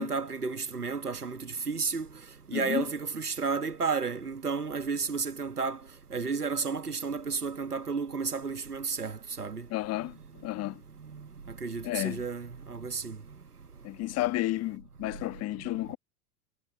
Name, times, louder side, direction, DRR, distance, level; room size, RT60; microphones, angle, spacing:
voice 1, 0.0-2.1 2.5-5.8 6.1-9.7 11.1-13.2, right 5 dB, 90° right, 1.5 m, -32 dB
voice 2, 2.5-2.9 9.7-10.8 11.8-12.2 13.8-16.0, left 17 dB, 35° left, 1.4 m, -32 dB
figure-of-eight pair, 90°, 45 cm